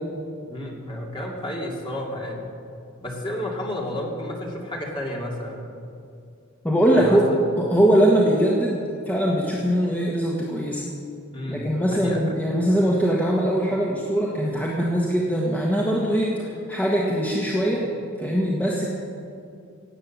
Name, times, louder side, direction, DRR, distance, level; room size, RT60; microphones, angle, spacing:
voice 1, 0.5-2.5 3.0-5.6 6.9-7.2 11.3-12.4, left 1 dB, 25° left, -2 dB, 2.6 m, -31 dB
voice 2, 6.6-7.2 7.6-10.8 11.5-17.9 18.2-18.8, right 1 dB, 10° left, -4 dB, 1.5 m, -21 dB
17.5 x 8.9 x 7.4 m, 2.4 s
head